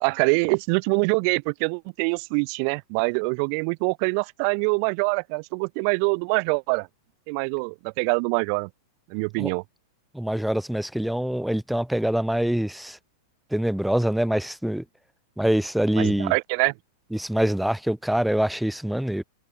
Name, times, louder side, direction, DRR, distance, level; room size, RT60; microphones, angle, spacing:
voice 1, 0.0-6.9 7.3-8.7 9.1-9.6 16.0-16.7, right 40 dB or more, 40° right, 0.8 m, -24 dB
voice 2, 10.1-13.0 13.5-14.8 15.4-16.3 17.1-19.2, right 1 dB, ahead, 1.8 m, -24 dB
supercardioid pair, 155°, 2 cm